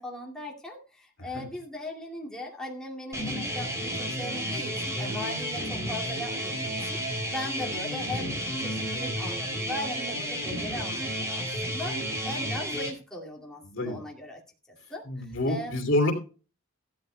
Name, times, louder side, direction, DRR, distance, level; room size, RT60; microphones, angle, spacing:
voice 1, 0.0-14.4 14.7-15.8, left 1 dB, 5° left, -3 dB, 2.3 m, -39 dB
sound 1, 3.1-12.9, equal, 15° right, 3.2 m, -32 dB
voice 2, 13.7-14.0 15.0-16.1, left 1 dB, 60° left, 4 dB, 2.8 m, -27 dB
15.0 x 13.0 x 2.2 m, 0.35 s
head